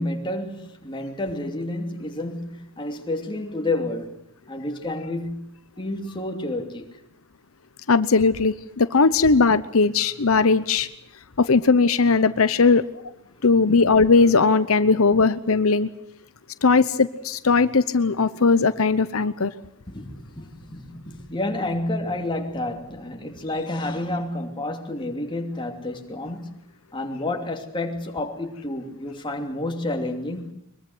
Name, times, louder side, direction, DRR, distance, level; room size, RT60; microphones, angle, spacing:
voice 1, 0.0-4.2 4.5-5.5 5.8-7.0 19.9-26.5 26.9-30.5, left 1 dB, 25° left, 2.9 m, -30 dB
voice 2, 7.9-10.9 11.4-12.9 13.4-15.9 16.6-19.5, left 4 dB, 85° left, 0.9 m, -19 dB
23.0 x 22.0 x 7.9 m
head